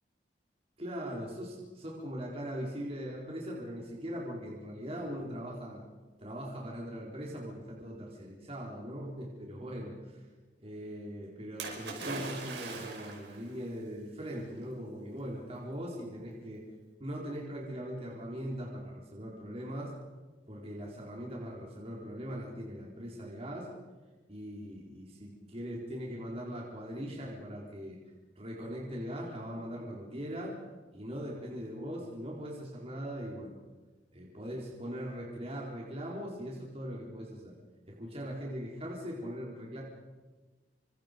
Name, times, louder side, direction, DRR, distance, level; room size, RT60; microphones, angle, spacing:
voice 1, 0.8-5.8 6.2-10.3 10.6-16.6 17.0-19.9 20.5-23.7 24.3-28.0 28.4-30.6 30.9-33.5 34.1-37.5 37.9-39.8, equal, 35° right, -3 dB, 4.4 m, -40 dB
Splash splatter, 11.6-13.4 14.3-14.4, right 3 dB, 75° right, 5.7 m, -40 dB
29.0 x 25.5 x 5.3 m, 1.3 s
head